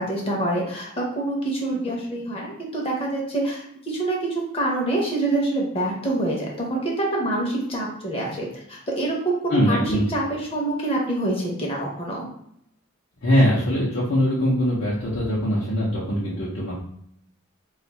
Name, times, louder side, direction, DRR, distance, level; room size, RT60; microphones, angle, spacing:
voice 1, 0.0-12.3, right 2 dB, 25° left, -2 dB, 0.8 m, -26 dB
voice 2, 9.5-10.0 13.2-16.7, equal, 55° left, -8 dB, 0.7 m, -22 dB
2.6 x 2.4 x 4.1 m, 0.73 s
head